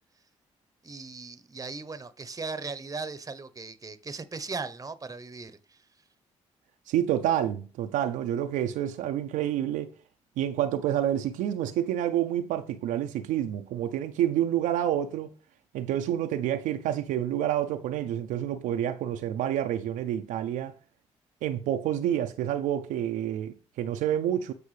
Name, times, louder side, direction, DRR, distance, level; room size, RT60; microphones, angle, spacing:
voice 1, 0.8-5.8, right 4 dB, 25° right, 0.8 m, -38 dB
voice 2, 6.9-9.9 10.4-15.3 15.7-20.7 21.4-24.5, right 11 dB, 80° right, 0.5 m, -28 dB
8.5 x 4.6 x 3.3 m
supercardioid pair, 55°, 13 cm